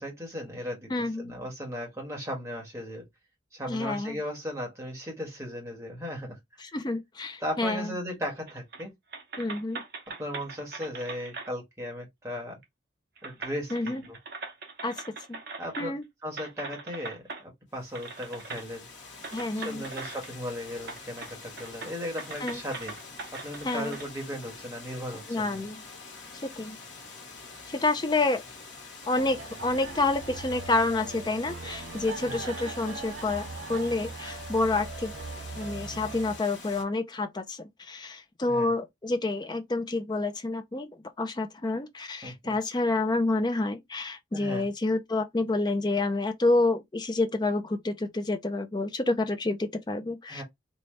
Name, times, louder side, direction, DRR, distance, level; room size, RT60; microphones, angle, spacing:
voice 1, 0.0-0.9 1.2-3.0 3.5-6.4 6.7-6.8 7.4-8.9 10.2-12.6 13.2-14.2 15.6-18.8 19.5-23.0 23.4-25.6 32.2-32.4 38.4-38.7 42.2-42.5 44.3-44.7 50.3-50.4, equal, 15° right, 1.4 m, -37 dB
voice 2, 0.9-1.4 3.7-4.2 6.6-8.0 9.4-9.8 13.7-14.1 14.8-15.0 15.3-15.4 15.8-16.0 19.3-19.8 22.4-22.6 23.6-24.0 25.3-25.8 26.4-26.8 27.7-28.4 29.1-35.1 35.5-40.9 41.2-50.4, left 2 dB, 25° left, 0.5 m, -28 dB
sound 1, 8.5-8.9 9.1-11.5 12.6-12.7 13.2-16.0 16.4-17.4 17.9-18.6 19.2-20.5 20.8-21.3 21.6-24.1, right 4 dB, 55° right, 0.9 m, -41 dB
Water, 17.7-36.8, left 4 dB, 65° left, 1.2 m, -46 dB
sound 2, 29.1-36.4, right 3 dB, 90° right, 0.8 m, -40 dB
4.1 x 2.3 x 3.1 m
head